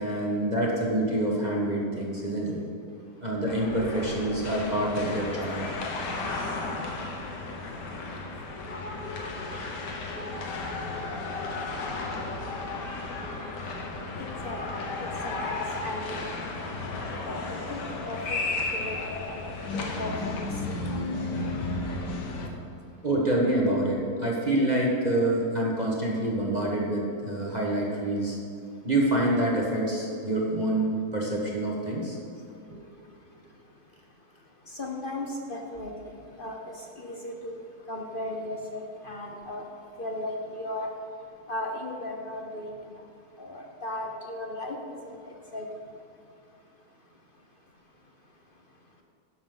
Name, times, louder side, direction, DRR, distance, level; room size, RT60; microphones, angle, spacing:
voice 1, 0.0-2.6 3.2-5.6 23.0-28.4 28.8-32.2 32.7-32.8, right 1 dB, 25° right, -3 dB, 1.4 m, -26 dB
sound 1, 3.5-22.5, left 3 dB, 75° left, 1.8 m, -34 dB
voice 2, 14.2-16.3 17.2-18.4 18.7-19.4 19.7-20.4 20.7-21.1 34.7-35.9 36.4-37.6 37.9-39.6 40.0-40.9 41.5-43.0 43.4-44.8 45.0-45.7, left 1 dB, 40° left, 1 dB, 0.8 m, -36 dB
12.5 x 10.5 x 3.9 m, 2.5 s
omnidirectional pair, 1.9 m